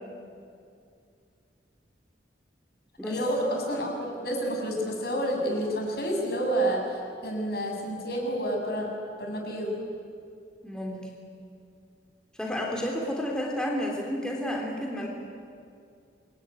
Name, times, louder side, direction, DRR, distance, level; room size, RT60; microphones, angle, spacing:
voice 1, 3.1-8.9 9.2-9.8, right 1 dB, 60° left, 1 dB, 6.6 m, -29 dB
voice 2, 10.6-11.1 12.4-15.1, left 1 dB, 5° left, -1 dB, 3.3 m, -31 dB
27.0 x 22.5 x 9.7 m, 2.4 s
head